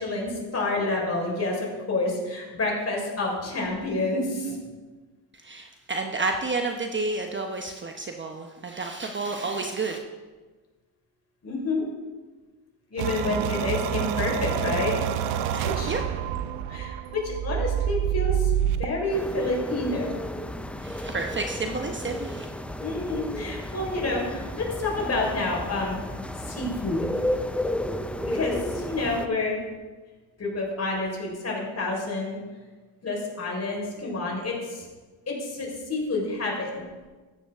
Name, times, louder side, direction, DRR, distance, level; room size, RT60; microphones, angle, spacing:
voice 1, 0.0-4.6 11.4-11.8 12.9-14.9 15.6-15.9 16.7-18.5 18.8-20.2 22.8-26.0 26.4-27.1 28.2-29.6 30.4-32.4 33.0-34.8 35.3-36.8, left 2 dB, 35° left, -1 dB, 4.4 m, -28 dB
voice 2, 5.4-10.0 15.5-16.0 20.8-22.5, right 3 dB, 25° right, 3 dB, 0.9 m, -30 dB
sound 1, 13.0-18.9, right 9 dB, 85° right, 0.8 m, -27 dB
sound 2, 19.1-29.3, left 1 dB, 5° left, 0.5 m, -33 dB
14.0 x 10.0 x 3.6 m, 1.3 s
cardioid pair, 100°, 46 cm